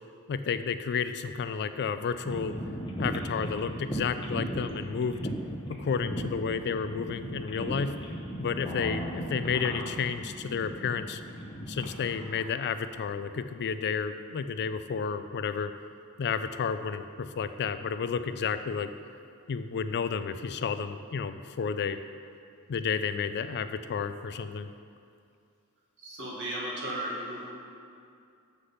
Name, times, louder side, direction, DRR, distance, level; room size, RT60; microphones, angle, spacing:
voice 1, 0.3-2.5 3.0-5.2 5.7-7.9 8.4-11.2 11.7-15.7 16.2-18.9 19.5-22.0 22.7-24.7, left 6 dB, 50° left, 11 dB, 0.4 m, -31 dB
sound 1, 2.2-12.4, equal, 20° left, 0.9 m, -37 dB
voice 2, 26.0-27.5, right 1 dB, 55° right, -5 dB, 1.9 m, -35 dB
7.5 x 6.6 x 5.6 m, 2.4 s
head